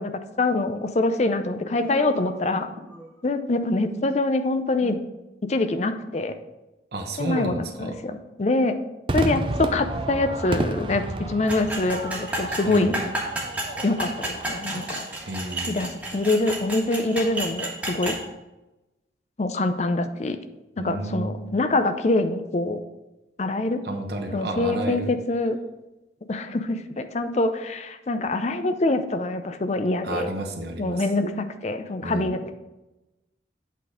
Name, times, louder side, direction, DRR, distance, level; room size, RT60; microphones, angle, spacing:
voice 1, 0.0-2.7 3.2-5.0 5.5-6.3 7.2-8.8 9.1-13.0 13.8-15.1 15.7-18.2 19.4-20.4 20.8-22.8 23.4-23.8 24.3-25.6 26.3-30.3 30.8-32.5, left 2 dB, 40° left, 9 dB, 0.5 m, -25 dB
Human voice, 1.8-3.5, equal, 10° left, 0.9 m, -42 dB
voice 2, 6.9-8.0 12.6-12.9 15.2-15.9 20.8-21.5 23.8-25.1 30.0-31.0 32.0-32.4, right 1 dB, 60° right, 3 dB, 1.0 m, -31 dB
Crowd / Fireworks, 9.1-15.6, right 2 dB, 30° right, 0.5 m, -31 dB
sound 1, 11.5-18.2, right 1 dB, 10° right, 1.4 m, -31 dB
8.3 x 4.0 x 4.9 m, 1.0 s
head